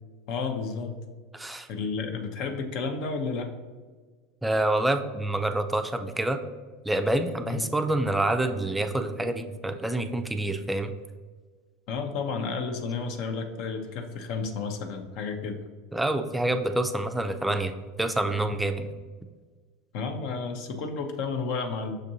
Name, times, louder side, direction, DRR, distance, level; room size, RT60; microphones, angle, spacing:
voice 1, 0.3-1.0 1.7-3.5 7.5-7.6 11.9-15.6 19.9-22.0, left 4 dB, 60° left, 4 dB, 0.6 m, -31 dB
voice 2, 1.3-1.7 4.4-6.4 6.8-10.9 15.9-17.7 18.0-18.9, right 1 dB, 5° right, 7 dB, 0.4 m, -27 dB
6.3 x 2.5 x 2.7 m, 1.4 s
hypercardioid pair, 95°, 0 cm